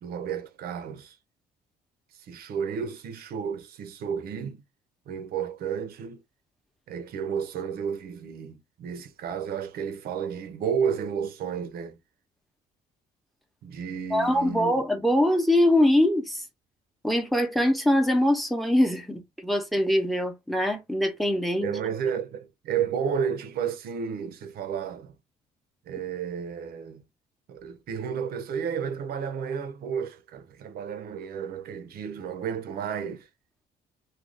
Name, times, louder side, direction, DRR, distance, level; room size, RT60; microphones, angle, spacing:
voice 1, 0.0-1.2 2.2-4.6 5.1-6.2 6.9-12.0 13.6-14.7 21.6-25.1 25.9-27.0 27.5-33.3, right 7 dB, 65° right, 0.7 m, -32 dB
voice 2, 14.1-16.4 17.0-21.7, left 1 dB, ahead, 0.8 m, -23 dB
2.5 x 2.3 x 3.3 m
cardioid pair, 110°, 17 cm